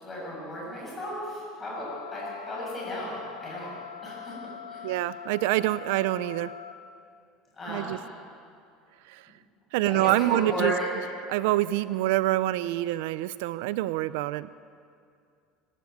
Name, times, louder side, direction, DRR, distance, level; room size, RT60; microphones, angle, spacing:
voice 1, 0.0-3.7 4.0-4.3 4.7-4.8 7.6-8.0 9.8-10.9, equal, 15° left, -5 dB, 7.5 m, -34 dB
sound 1, 1.7-6.7, left 9 dB, 90° left, 1.6 m, -42 dB
voice 2, 4.8-6.5 7.7-8.0 9.1-9.2 9.7-10.7 11.3-14.5, right 16 dB, 75° right, 16 dB, 0.5 m, -26 dB
22.0 x 12.5 x 9.3 m, 2.4 s
cardioid pair, 170°, 0 cm